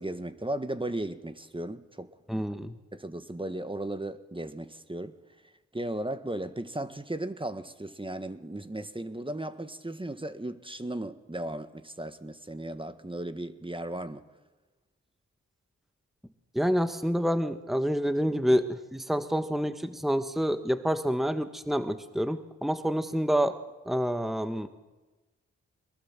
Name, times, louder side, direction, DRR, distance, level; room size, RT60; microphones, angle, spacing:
voice 1, 0.0-2.4 2.9-5.2 5.7-14.2, right 1 dB, 15° right, 1.6 m, -36 dB
voice 2, 2.3-2.7 16.5-23.5 23.8-24.7, equal, ahead, 1.5 m, -28 dB
23.0 x 21.5 x 7.5 m
supercardioid pair, 45°, 30 cm